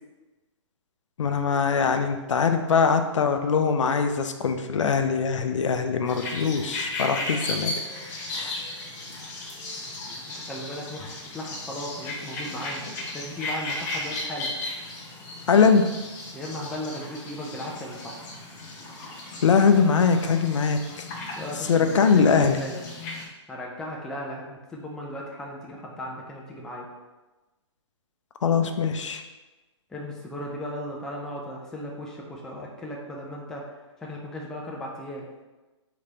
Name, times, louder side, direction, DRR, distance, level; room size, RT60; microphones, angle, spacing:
voice 1, 1.2-7.7 8.3-8.5 15.5-15.9 19.4-21.1 21.7-22.6 28.4-29.2, left 5 dB, 80° left, 7 dB, 0.5 m, -22 dB
sound 1, 6.1-23.2, left 2 dB, 35° left, 0.9 m, -36 dB
voice 2, 10.4-11.1 11.3-12.8 13.1-14.5 16.3-18.2 21.3-22.9 23.5-26.9 29.9-35.3, left 1 dB, 5° left, -3 dB, 0.4 m, -36 dB
3.4 x 3.2 x 3.8 m, 1.1 s
hypercardioid pair, 140°, 16 cm